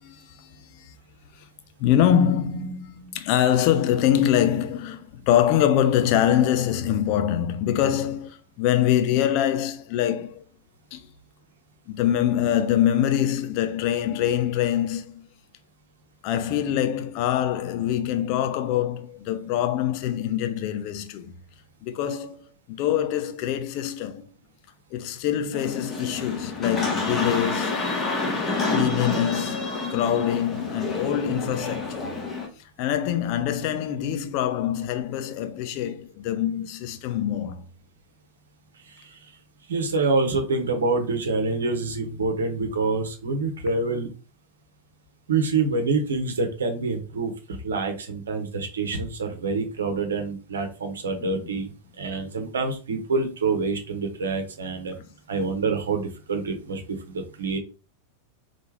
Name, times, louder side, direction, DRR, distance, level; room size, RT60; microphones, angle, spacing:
voice 1, 0.0-0.9 1.8-10.4 10.9-11.1 11.9-15.3 16.2-21.3 21.8-24.3 24.9-27.9 28.7-32.2 32.8-37.6 51.2-51.6 55.0-55.1, left 10 dB, 45° left, 0.7 m, -24 dB
sound 1, 25.5-32.5, left 3 dB, 25° left, 1.3 m, -28 dB
voice 2, 39.7-44.1 45.3-47.3 47.6-51.7 52.0-54.9 55.3-57.6, right 3 dB, 65° right, 1.1 m, -26 dB
3.8 x 3.4 x 3.3 m
figure-of-eight pair, 90°, 0 cm